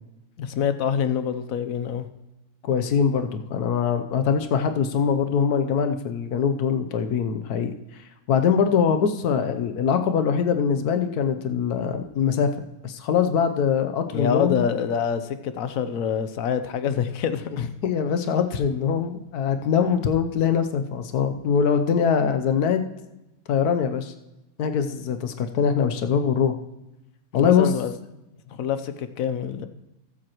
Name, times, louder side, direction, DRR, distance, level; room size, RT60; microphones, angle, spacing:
voice 1, 0.4-2.0 14.1-17.7 27.3-27.9 28.5-29.7, left 7 dB, 70° left, 10 dB, 1.1 m, -26 dB
voice 2, 2.6-12.5 12.8-14.6 17.8-22.8 23.5-24.1 24.6-26.5 27.3-27.7, left 7 dB, 85° left, 7 dB, 1.3 m, -23 dB
18.5 x 7.7 x 3.0 m, 0.95 s
omnidirectional pair, 1.6 m